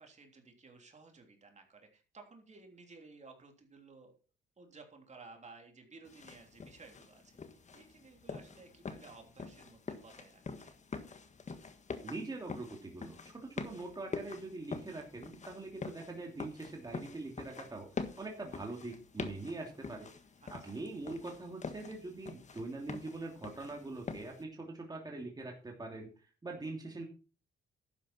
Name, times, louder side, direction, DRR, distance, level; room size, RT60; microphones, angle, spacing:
voice 1, 0.0-4.1 4.6-7.4 7.7-10.7 20.4-20.8, right 4 dB, 35° right, 3 dB, 3.3 m, -56 dB
sound 1, 6.1-24.4, left 4 dB, 35° left, 1.6 m, -46 dB
voice 2, 12.0-17.9 18.2-20.1 20.5-27.0, right 2 dB, 20° right, 1 dB, 2.9 m, -43 dB
12.0 x 9.7 x 4.4 m, 0.36 s
cardioid pair, 90°, 20 cm